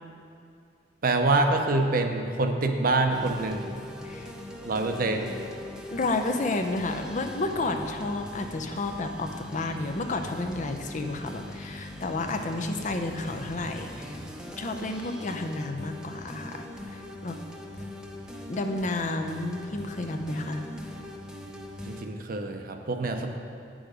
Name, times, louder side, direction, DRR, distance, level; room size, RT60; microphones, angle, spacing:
voice 1, 1.0-3.8 4.6-5.4 21.5-23.3, right 2 dB, 50° right, 5 dB, 0.7 m, -26 dB
sound 1, 3.1-22.1, left 1 dB, 5° right, 0.7 m, -41 dB
voice 2, 5.9-14.2 14.6-17.4 18.5-20.6, left 2 dB, 45° left, 5 dB, 0.6 m, -31 dB
9.3 x 6.3 x 5.0 m, 2.5 s
head